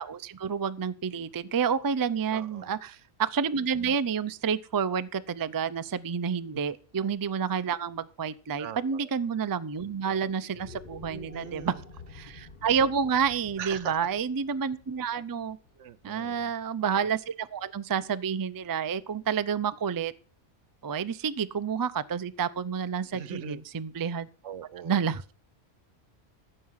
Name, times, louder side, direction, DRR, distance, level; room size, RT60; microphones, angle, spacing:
voice 1, 0.0-11.7 12.1-15.6 16.0-20.1 20.8-24.3 24.8-25.2, right 6 dB, 30° right, 0.3 m, -29 dB
voice 2, 2.3-2.7 8.6-9.1 11.1-11.8 13.6-14.0 15.8-16.5 23.1-23.6 24.4-25.0, right 9 dB, 80° right, 1.1 m, -41 dB
sound 1, 10.5-16.8, left 4 dB, 40° left, 1.6 m, -50 dB
14.5 x 7.6 x 5.7 m
omnidirectional pair, 1.2 m